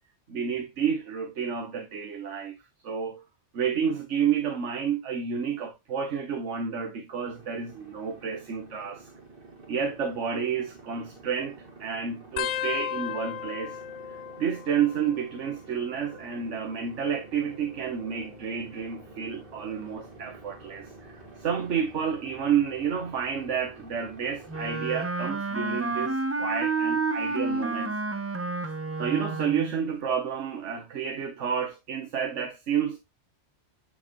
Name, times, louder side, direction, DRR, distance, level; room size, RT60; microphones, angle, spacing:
voice 1, 0.3-2.5 2.8-3.2 3.5-9.1 9.7-13.8 14.4-28.0 29.0-33.0, right 7 dB, 80° right, 1.4 m, -30 dB
sound 1, 7.2-24.8, right 2 dB, 45° right, 2.2 m, -49 dB
sound 2, 12.4-15.5 15.8-16.4 17.4-18.9 19.5-19.9 21.1-21.4 22.9-23.0, left 11 dB, 80° left, 0.9 m, -37 dB
Wind instrument woodwind instrument, 24.5-29.8, right 3 dB, 15° right, 0.5 m, -30 dB
9.6 x 4.3 x 3.0 m
omnidirectional pair, 1.2 m